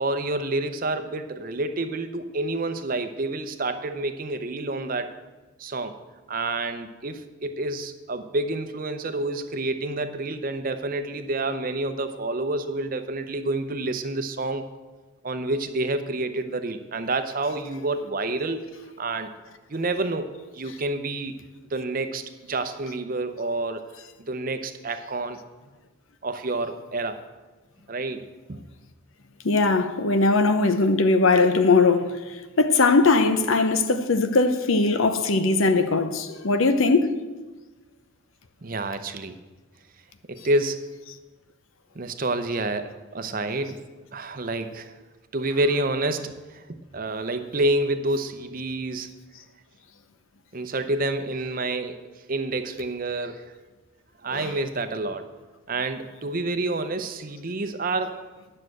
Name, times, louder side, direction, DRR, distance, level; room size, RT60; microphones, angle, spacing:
voice 1, 0.0-5.1 5.6-6.0 6.3-14.6 15.2-18.7 19.0-19.3 19.7-21.4 21.7-23.8 24.2-25.4 26.2-27.2 27.9-28.6 38.6-39.4 40.3-40.9 42.0-43.8 44.1-44.9 45.3-46.6 46.9-49.1 50.5-53.4 54.2-55.3 55.7-58.2, right 2 dB, 40° right, 0.6 m, -28 dB
voice 2, 29.4-32.1 32.6-37.1 43.3-43.4 54.3-54.6, left 3 dB, 70° left, 0.7 m, -20 dB
9.7 x 6.5 x 7.7 m
head